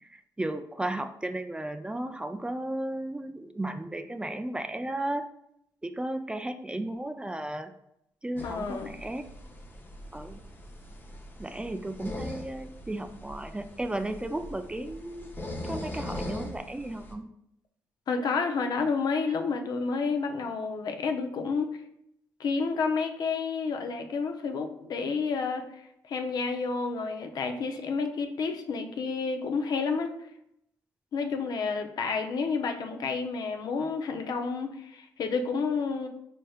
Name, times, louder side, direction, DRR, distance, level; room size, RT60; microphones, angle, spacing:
voice 1, 0.0-5.3 5.8-7.7 8.2-9.3 10.1-10.4 11.4-17.3, right 1 dB, 15° right, 8 dB, 0.3 m, -34 dB
voice 2, 8.4-8.9 18.1-21.8 22.4-30.3 31.1-36.1, left 4 dB, 65° left, 5 dB, 0.5 m, -30 dB
sound 1, 8.4-17.1, left 1 dB, 25° left, 0.7 m, -41 dB
4.2 x 3.2 x 2.3 m, 0.78 s
supercardioid pair, 60°, 7 cm